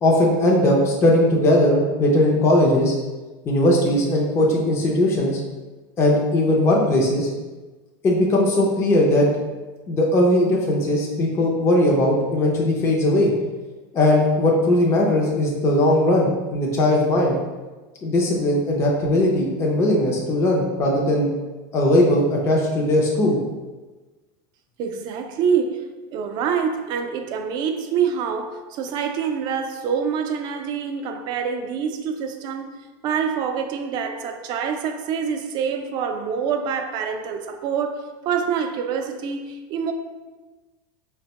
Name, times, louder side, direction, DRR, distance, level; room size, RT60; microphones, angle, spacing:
voice 1, 0.0-2.9 3.5-5.4 6.0-7.3 8.0-9.3 9.9-13.3 13.9-17.3 18.0-21.3 21.7-23.4, left 1 dB, 20° left, 0.5 m, -19 dB
voice 2, 24.8-32.7 33.0-39.9, right 7 dB, 40° right, 0.4 m, -26 dB
4.7 x 2.1 x 2.9 m
supercardioid pair, 150°, 12 cm